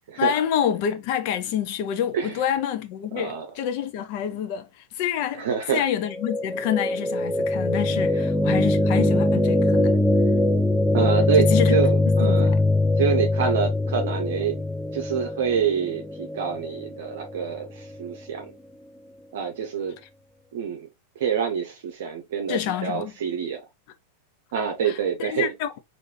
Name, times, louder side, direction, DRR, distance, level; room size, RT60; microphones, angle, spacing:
voice 1, 0.2-10.0 11.4-11.7 12.2-12.6 22.5-23.1 24.8-25.7, left 10 dB, 45° left, 0.6 m, -27 dB
voice 2, 3.1-3.5 5.4-5.8 10.9-12.5 13.0-14.6 14.9-18.6 19.3-20.0 20.5-20.9 21.2-23.6 24.5-25.5, right 7 dB, 55° right, 0.7 m, -26 dB
sound 1, 6.1-18.2, left 2 dB, ahead, 0.3 m, -22 dB
4.7 x 2.6 x 3.0 m
figure-of-eight pair, 90°, 0 cm